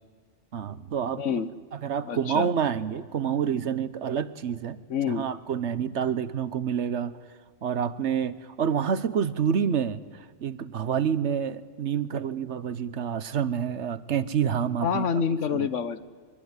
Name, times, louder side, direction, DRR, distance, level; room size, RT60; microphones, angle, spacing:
voice 1, 0.5-1.4 1.7-4.8 5.1-7.2 7.6-15.1 15.5-15.7, right 8 dB, 65° right, 14 dB, 1.2 m, -28 dB
voice 2, 1.2-1.5 2.1-2.5 4.9-5.2 14.8-16.0, left 6 dB, 75° left, 13 dB, 1.4 m, -27 dB
23.5 x 23.0 x 9.7 m, 1.6 s
omnidirectional pair, 1.3 m